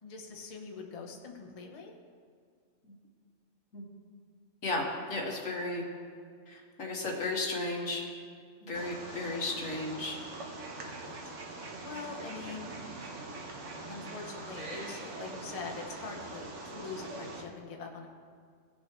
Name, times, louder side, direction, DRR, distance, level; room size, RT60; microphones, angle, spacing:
voice 1, 0.0-1.9 8.6-9.3 10.7-11.2 11.8-13.1 13.9-18.1, left 4 dB, 30° left, 0 dB, 1.0 m, -44 dB
voice 2, 5.1-5.8 6.5-8.0 8.6-10.2, left 2 dB, 80° left, -2 dB, 1.9 m, -34 dB
Wild animals, 8.7-17.4, right 2 dB, 65° right, 1.4 m, -43 dB
18.0 x 6.3 x 3.2 m, 2.2 s
omnidirectional pair, 1.4 m